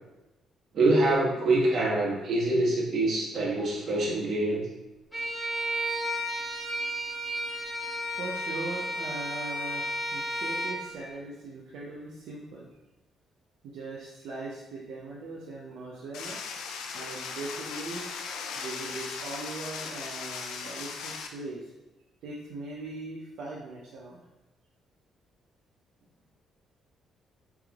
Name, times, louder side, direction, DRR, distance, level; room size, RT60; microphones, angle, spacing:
voice 1, 0.7-4.6, right 2 dB, 60° right, -4 dB, 1.4 m, -25 dB
Bowed string instrument, 5.1-10.8, equal, 5° left, 1.3 m, -32 dB
voice 2, 8.1-12.7 13.6-16.4 16.9-18.2 18.6-21.7 22.2-24.2, right 2 dB, 80° right, -5 dB, 0.7 m, -40 dB
sound 1, 16.1-21.3, left 5 dB, 85° left, 0.4 m, -38 dB
3.8 x 3.5 x 3.5 m, 1.0 s
cardioid pair, 90°, 0 cm